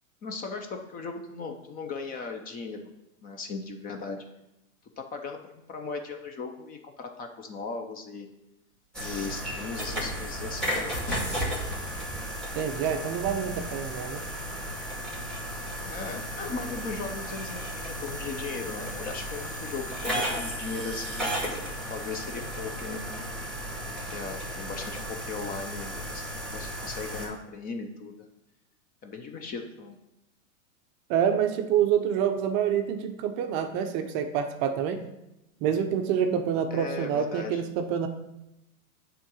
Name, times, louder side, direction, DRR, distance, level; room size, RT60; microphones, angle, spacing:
voice 1, 0.2-2.9 3.2-4.2 5.0-8.3 9.0-11.0 15.8-21.4 21.9-23.2 24.1-28.3 29.0-30.0 36.7-37.6, left 4 dB, 20° left, 5 dB, 0.6 m, -37 dB
sound 1, 8.9-27.3, equal, ahead, 2.1 m, -34 dB
sound 2, 9.8-15.1, right 1 dB, 45° left, 2.3 m, -40 dB
voice 2, 12.5-14.2 31.1-35.0 35.6-38.1, right 8 dB, 35° right, 7 dB, 0.6 m, -27 dB
8.2 x 3.8 x 6.2 m, 0.91 s
hypercardioid pair, 135°, 42 cm